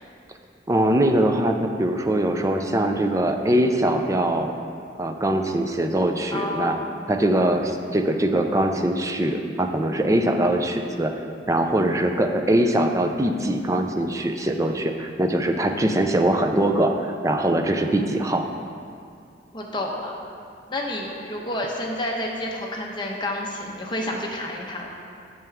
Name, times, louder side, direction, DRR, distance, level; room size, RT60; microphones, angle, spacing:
voice 1, 0.7-4.5 5.0-6.8 7.1-11.1 11.5-18.5, right 1 dB, 15° right, 5 dB, 0.4 m, -22 dB
voice 2, 6.3-6.9 19.5-20.2 20.7-24.9, left 1 dB, 25° left, -1 dB, 0.9 m, -29 dB
9.0 x 6.8 x 3.5 m, 2.3 s
head